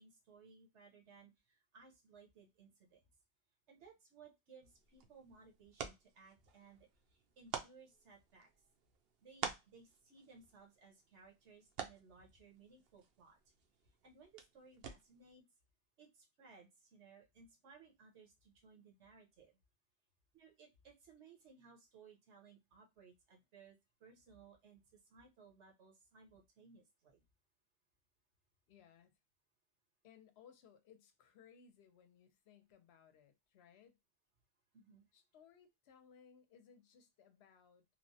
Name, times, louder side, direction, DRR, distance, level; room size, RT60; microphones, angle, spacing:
voice 1, 0.0-3.0 3.7-8.5 9.2-13.4 13.8-15.4 16.0-19.6 20.3-27.2 34.7-35.0, right 5 dB, 80° right, 1.2 m, -62 dB
sound 1, 4.6-15.3, right 7 dB, 65° right, 0.7 m, -50 dB
voice 2, 28.7-29.1 30.0-34.0 35.1-38.0, left 7 dB, 70° left, 0.8 m, -64 dB
3.0 x 2.0 x 2.6 m
omnidirectional pair, 1.2 m